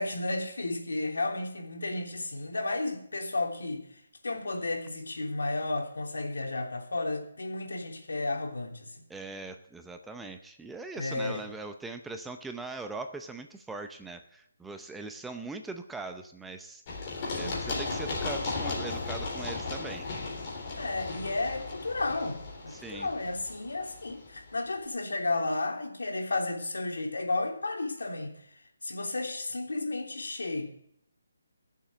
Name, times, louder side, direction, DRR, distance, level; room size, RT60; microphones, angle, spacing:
voice 1, 0.0-3.8 4.2-9.0 11.0-11.4 17.4-17.6 20.8-28.3 28.8-30.7, left 2 dB, 85° left, 2 dB, 3.2 m, -33 dB
voice 2, 9.1-16.8 17.3-20.1 22.7-23.1, right 3 dB, 5° right, 6 dB, 0.6 m, -41 dB
Run, 16.9-24.5, left 3 dB, 25° left, 3.6 m, -36 dB
15.0 x 7.4 x 8.0 m, 0.71 s
hypercardioid pair, 165°, 0 cm